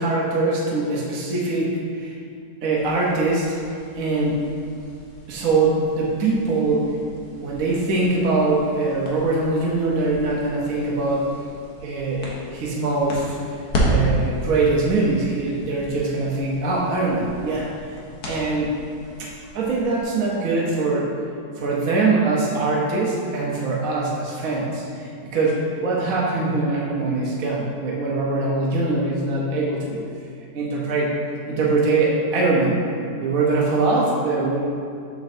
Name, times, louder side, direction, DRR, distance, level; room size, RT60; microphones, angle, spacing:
voice 1, 0.0-2.2 2.6-3.5 3.9-4.4 5.3-6.9 7.4-11.3 11.8-13.6 13.9-18.0 18.3-18.8 19.2-21.1 21.6-30.0 30.5-31.1 31.5-32.8 33.2-34.6, right 3 dB, 60° right, -4 dB, 1.2 m, -22 dB
sound 1, 2.7-20.0, equal, 65° left, 1.6 m, -33 dB
7.3 x 6.2 x 2.7 m, 2.4 s
omnidirectional pair, 1.9 m